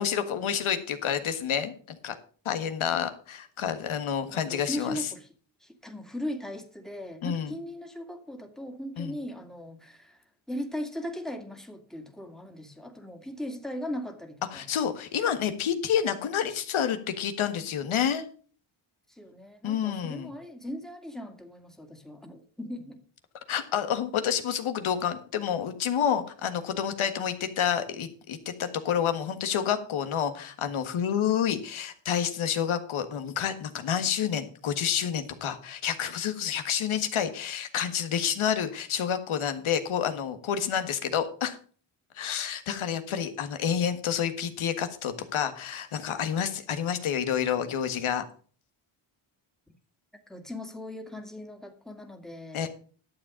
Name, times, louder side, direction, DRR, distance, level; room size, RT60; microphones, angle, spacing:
voice 1, 0.0-2.2 2.4-5.1 7.2-7.5 9.0-9.2 14.5-18.2 19.6-20.3 23.5-41.6 42.1-48.2 52.5-52.7, left 8 dB, 75° left, 1.7 m, -29 dB
voice 2, 4.3-5.3 5.6-10.2 10.5-14.6 19.1-23.0 49.7-49.8 50.3-52.7, left 1 dB, ahead, 2.2 m, -38 dB
11.5 x 7.5 x 5.1 m
cardioid pair, 80°, 49 cm